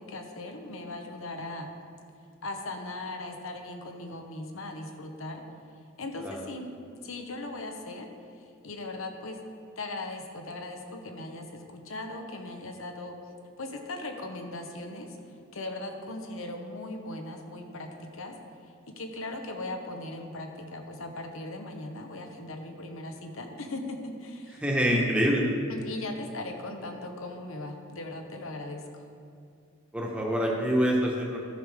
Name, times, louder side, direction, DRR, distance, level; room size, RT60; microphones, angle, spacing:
voice 1, 0.0-1.7 2.4-5.4 6.0-6.7 7.0-8.1 8.3-9.4 9.8-13.2 13.6-18.4 18.6-25.1 25.7-29.1, left 2 dB, 70° left, 4 dB, 1.0 m, -38 dB
voice 2, 24.6-25.5 29.9-31.4, equal, 5° right, -3 dB, 1.3 m, -25 dB
14.0 x 6.5 x 3.6 m, 2.3 s
head